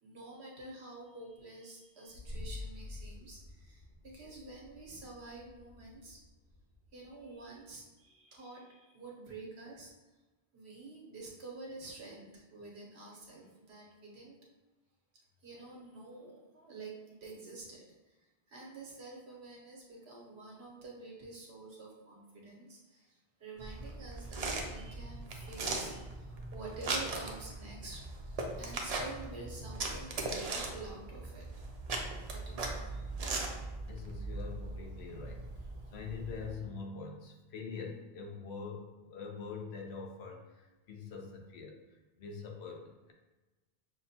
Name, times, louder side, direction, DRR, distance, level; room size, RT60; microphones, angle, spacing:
voice 1, 0.0-6.2 6.9-9.9 10.5-14.4 15.4-17.0 17.2-18.2 18.5-31.5 32.3-33.1, right 3 dB, 90° right, -3 dB, 1.3 m, -49 dB
sound 1, 2.1-7.7, left 2 dB, 70° left, 2.0 m, -48 dB
sound 2, 23.6-36.5, right 3 dB, 50° right, 0.5 m, -39 dB
voice 2, 33.9-43.1, left 5 dB, 85° left, 1 dB, 1.0 m, -44 dB
5.9 x 2.2 x 2.8 m, 1.2 s
omnidirectional pair, 1.1 m